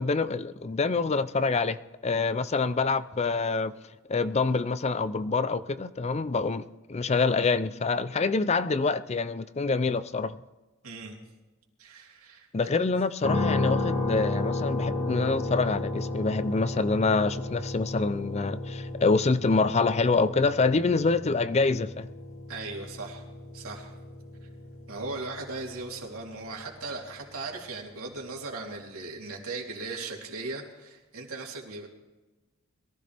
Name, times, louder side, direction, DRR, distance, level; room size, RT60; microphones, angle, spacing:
voice 1, 0.0-1.8 2.0-3.7 4.1-10.4 12.5-22.1, left 4 dB, 30° left, 14 dB, 0.5 m, -26 dB
voice 2, 10.8-11.2 11.8-12.5 22.5-23.2 23.5-23.9 24.4-24.5 24.9-31.9, right 3 dB, 85° right, -1 dB, 3.3 m, -38 dB
sound 1, 13.2-27.2, left 2 dB, 75° left, 2.2 m, -33 dB
22.5 x 15.0 x 3.4 m, 1.1 s
head